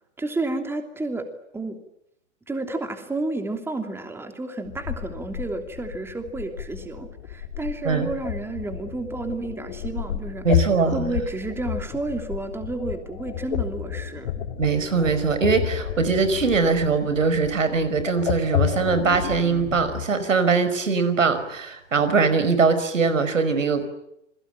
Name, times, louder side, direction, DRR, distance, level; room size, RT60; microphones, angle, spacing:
voice 1, 0.2-1.3 1.5-1.8 2.5-10.5 10.9-14.3, right 2 dB, 5° right, 6 dB, 3.0 m, -31 dB
sound 1, 4.7-20.1, left 10 dB, 60° left, 4.0 m, -31 dB
voice 2, 10.4-11.1 14.6-23.8, right 4 dB, 85° right, 11 dB, 5.4 m, -22 dB
28.5 x 22.0 x 9.1 m, 0.79 s
hypercardioid pair, 125°, 37 cm